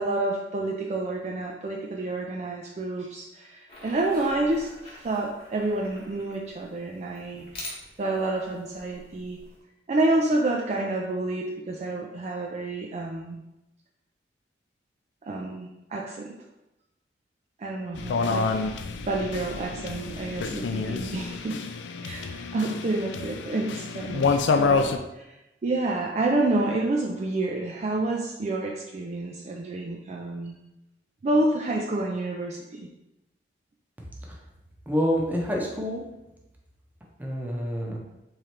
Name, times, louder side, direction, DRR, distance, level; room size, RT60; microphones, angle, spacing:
voice 1, 0.0-7.5 8.0-9.4 9.9-13.4 15.2-16.4 17.6-18.6 19.1-21.6 22.0-25.4 25.6-30.6 31.2-32.9, right 2 dB, 40° right, 0 dB, 0.3 m, -29 dB
sound 1, 3.7-9.6, left 2 dB, 35° left, 1.1 m, -46 dB
sound 2, 18.0-25.0, left 4 dB, 80° left, 0.4 m, -28 dB
voice 2, 34.9-36.0 37.2-38.0, equal, 10° right, -2 dB, 0.7 m, -27 dB
3.7 x 3.2 x 4.3 m, 0.94 s
head